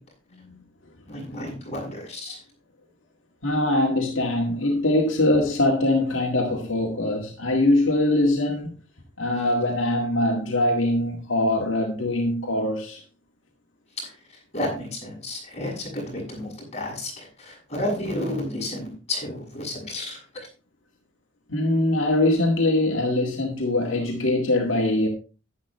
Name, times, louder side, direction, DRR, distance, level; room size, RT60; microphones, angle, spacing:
voice 1, 1.1-2.4 14.0-14.1 14.5-20.5, left 1 dB, 35° left, 6.6 m, -31 dB
voice 2, 3.4-8.7 9.2-13.0 21.5-25.1, left 1 dB, 75° left, 2.0 m, -22 dB
11.0 x 10.5 x 3.2 m
head